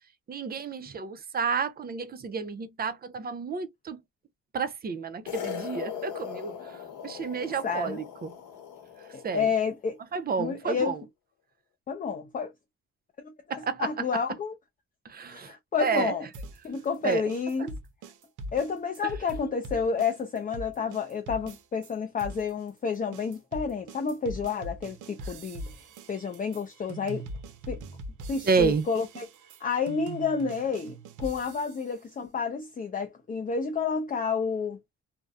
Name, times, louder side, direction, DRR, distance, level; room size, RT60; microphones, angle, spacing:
voice 1, 0.3-4.0 4.5-8.3 9.2-9.5 10.1-11.0 13.5-14.1 15.0-15.5 15.8-16.2 17.0-17.2 28.4-28.9, right 5 dB, 30° right, 0.5 m, -30 dB
sound 1, 5.3-9.7, left 8 dB, 80° left, 1.0 m, -39 dB
voice 2, 7.6-8.0 9.1-10.0 10.4-10.9 11.9-12.5 13.2-14.5 15.3-16.3 16.6-17.7 18.5-25.7 26.1-27.3 27.7-27.8 28.3-29.3 29.6-34.8, left 5 dB, 30° left, 0.5 m, -30 dB
sound 2, 16.3-21.9 22.2-31.9, right 1 dB, 80° right, 0.6 m, -42 dB
2.6 x 2.1 x 2.2 m
cardioid pair, 90°, 30 cm